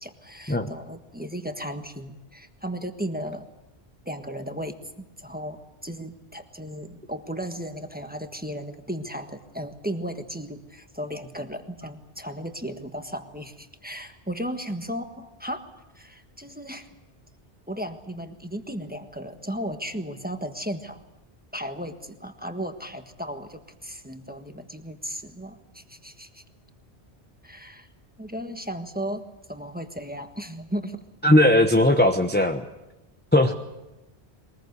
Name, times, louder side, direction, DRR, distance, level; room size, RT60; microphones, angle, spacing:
voice 1, 0.0-3.5 4.0-16.9 17.7-21.0 21.5-26.4 27.4-27.9 28.2-31.0, equal, 10° right, 6 dB, 1.4 m, -35 dB
voice 2, 31.2-32.6 33.3-33.5, left 1 dB, 10° left, 5 dB, 0.9 m, -18 dB
22.0 x 20.0 x 8.1 m, 0.99 s
omnidirectional pair, 1.1 m